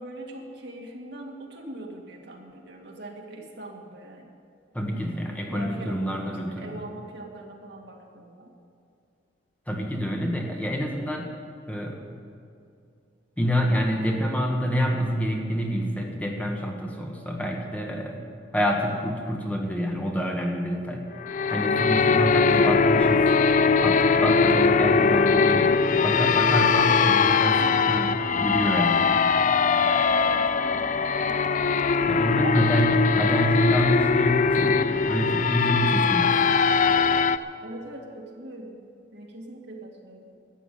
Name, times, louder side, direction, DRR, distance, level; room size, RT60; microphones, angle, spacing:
voice 1, 0.0-4.3 5.5-8.5 26.8-27.1 27.6-27.8 30.1-31.4 32.3-32.6 37.6-38.8 39.1-40.3, right 1 dB, 65° right, 0 dB, 2.1 m, -41 dB
voice 2, 4.7-6.8 9.7-11.3 11.7-12.0 13.4-18.2 18.5-21.0 21.5-23.3 23.8-29.2 32.1-37.0, equal, 10° left, 0 dB, 1.4 m, -27 dB
sound 1, 21.2-37.4, left 5 dB, 45° left, 0.4 m, -21 dB
13.0 x 8.5 x 10.0 m, 2.4 s
head